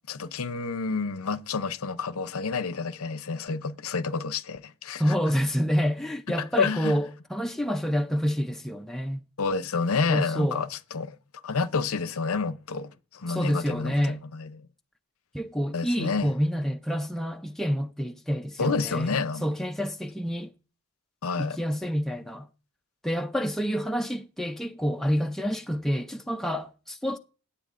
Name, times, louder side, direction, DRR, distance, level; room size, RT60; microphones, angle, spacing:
voice 1, 0.1-5.0 6.6-6.9 9.4-11.2 11.4-14.6 15.7-16.3 18.6-19.4 21.2-21.6, left 4 dB, 75° left, 0.7 m, -29 dB
voice 2, 5.0-9.2 10.1-10.6 13.3-14.2 15.3-20.5 21.4-22.5 23.0-27.2, equal, ahead, 0.5 m, -28 dB
17.5 x 7.9 x 2.6 m
head